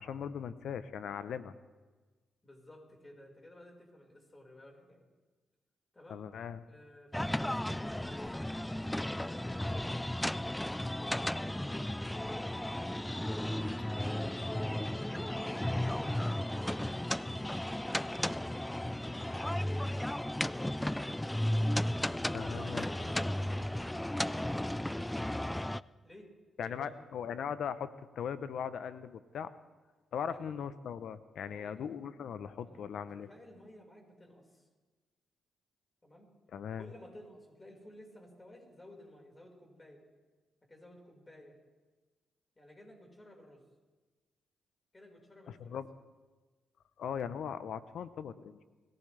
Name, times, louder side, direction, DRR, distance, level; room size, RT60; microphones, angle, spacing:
voice 1, 0.0-1.6 6.1-6.6 22.3-22.8 26.6-29.5 30.1-33.3 36.5-36.9 45.5-45.9 47.0-48.6, left 7 dB, 70° left, 13 dB, 0.8 m, -39 dB
voice 2, 2.4-5.0 5.9-6.2 6.7-9.7 11.4-13.3 14.8-17.4 17.8-20.9 22.2-24.0 26.0-26.9 30.3-30.5 31.5-32.0 32.6-34.7 36.0-36.3 36.8-40.0 40.7-41.6 42.5-43.6 44.9-45.8, left 1 dB, 25° left, 1 dB, 4.9 m, -55 dB
sound 1, 7.1-25.8, left 1 dB, 10° left, 0.4 m, -34 dB
22.0 x 17.0 x 3.4 m, 1.3 s
supercardioid pair, 60°, 0 cm